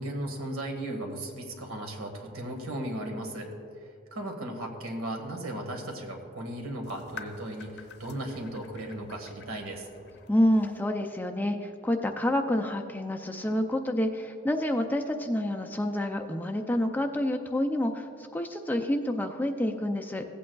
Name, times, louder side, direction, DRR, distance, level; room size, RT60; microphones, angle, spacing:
voice 1, 0.0-3.5 3.8-9.9, right 1 dB, 80° right, 2 dB, 1.6 m, -36 dB
sound 1, 6.8-10.8, left 5 dB, 55° left, 0.7 m, -49 dB
voice 2, 10.3-20.3, left 1 dB, 10° left, 4 dB, 0.4 m, -28 dB
16.0 x 8.6 x 2.3 m, 2.5 s
head